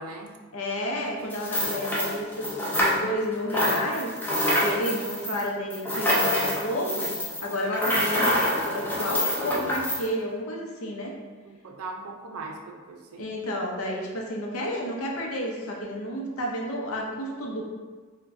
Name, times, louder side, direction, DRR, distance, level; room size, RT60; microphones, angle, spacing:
voice 1, 0.0-0.4 11.4-13.3, right 3 dB, 80° right, 2 dB, 0.5 m, -39 dB
voice 2, 0.5-4.2 4.6-7.1 7.4-11.1 13.2-17.7, equal, 75° left, -1 dB, 0.6 m, -31 dB
sound 1, 1.3-3.2 3.5-10.0, equal, 10° left, 0.5 m, -26 dB
4.6 x 2.2 x 2.5 m, 1.4 s
head